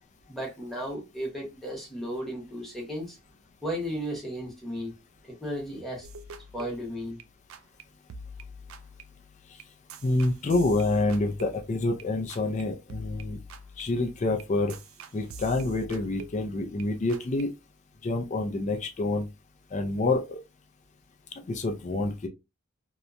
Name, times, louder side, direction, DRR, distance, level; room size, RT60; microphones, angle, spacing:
voice 1, 0.3-3.2 3.6-4.9 5.2-6.1 6.5-7.2, equal, ahead, 0.9 m, -34 dB
sound 1, 6.0-7.8 8.1-12.6 12.9-16.8 17.1-17.4, right 1 dB, 65° right, 0.3 m, -45 dB
voice 2, 10.0-13.4 13.8-14.7 15.1-17.5 18.0-19.3 19.7-20.4 21.5-22.3, left 2 dB, 30° left, 0.4 m, -27 dB
2.8 x 2.1 x 2.5 m
head